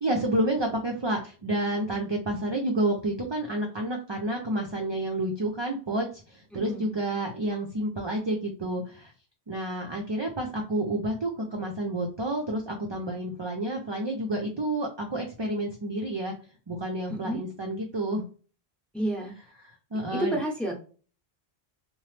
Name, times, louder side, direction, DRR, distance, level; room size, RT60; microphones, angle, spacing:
voice 1, 0.0-9.1 9.5-16.3 16.7-18.2 19.6-20.4, right 1 dB, 40° right, 1 dB, 0.4 m, -30 dB
voice 2, 6.5-6.9 17.1-17.4 18.9-19.3 20.1-20.7, equal, ahead, 0 dB, 0.7 m, -30 dB
2.9 x 2.1 x 3.2 m, 0.37 s
omnidirectional pair, 1.0 m